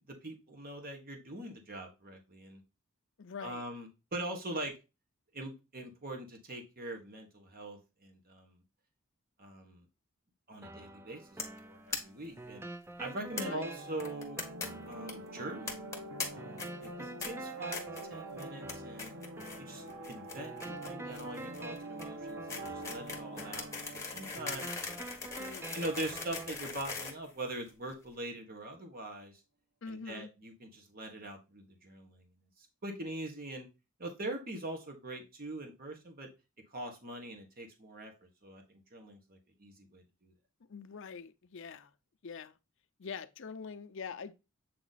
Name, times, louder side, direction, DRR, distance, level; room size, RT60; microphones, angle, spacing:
voice 1, 0.1-2.6 3.4-4.7 5.3-8.6 9.4-9.8 10.5-12.7 13.0-14.4 14.9-15.8 16.3-17.8 18.1-19.1 19.6-24.7 25.7-29.4 29.9-32.3 32.6-33.7 34.0-36.3 36.7-40.3, right 1 dB, 45° right, 1.3 m, -42 dB
voice 2, 3.2-3.6 13.2-13.7 25.4-25.7 29.8-30.3 40.6-41.9 42.2-42.6 43.0-44.3, left 5 dB, 60° left, 0.5 m, -44 dB
sound 1, 10.6-26.6, right 2 dB, 10° right, 0.3 m, -48 dB
sound 2, 11.4-11.6 11.9-12.0 12.3-12.4 12.6-12.7 13.4-13.5 14.0-14.7 14.9-15.1 15.7-16.3 16.6-16.9 17.2-17.3 17.7-18.0 18.4-18.7 19.0-19.6 19.9-27.9, left 4 dB, 15° left, 1.3 m, -40 dB
sound 3, 13.3-26.1, right 2 dB, 75° right, 0.9 m, -46 dB
7.8 x 3.0 x 4.0 m
head